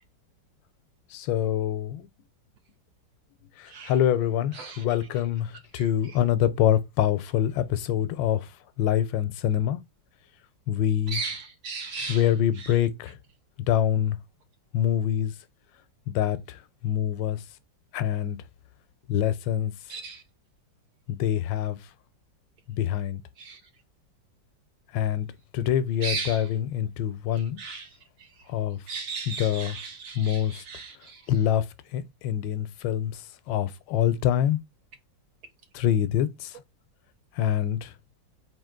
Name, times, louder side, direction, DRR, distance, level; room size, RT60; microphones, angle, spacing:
voice 1, 1.1-2.1 3.6-8.5 8.8-9.8 10.7-11.2 12.1-13.2 13.7-14.2 14.7-15.3 16.1-17.4 17.9-18.4 19.1-19.7 21.1-21.8 22.7-23.2 24.9-25.3 25.5-27.6 28.5-28.8 29.3-29.8 30.1-30.6 31.3-31.7 31.9-33.2 33.5-34.6 35.7-36.6 37.4-37.9, left 10 dB, 85° left, 1.3 m, -25 dB
voice 2, 4.5-4.8 5.7-5.9 11.1-12.2 12.6-12.7 19.9-20.2 23.4-23.6 26.0-26.5 27.6-27.9 28.9-31.2, right 4 dB, 70° right, 0.9 m, -36 dB
4.1 x 2.7 x 3.6 m
omnidirectional pair, 2.0 m